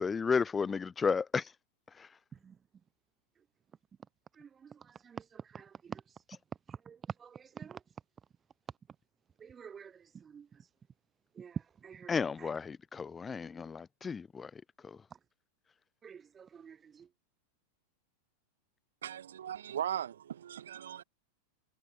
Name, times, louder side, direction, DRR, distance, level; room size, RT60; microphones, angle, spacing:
voice 1, 0.0-1.5 2.0-2.1 12.1-15.0, left 5 dB, 15° left, 0.7 m, -33 dB
voice 2, 4.8-6.0 6.7-7.8 9.4-10.4 11.4-12.1 12.4-12.5 16.0-17.1, right 7 dB, 20° right, 0.8 m, -46 dB
voice 3, 19.0-21.0, right 10 dB, 65° right, 1.6 m, -38 dB
figure-of-eight pair, 90°, 0 cm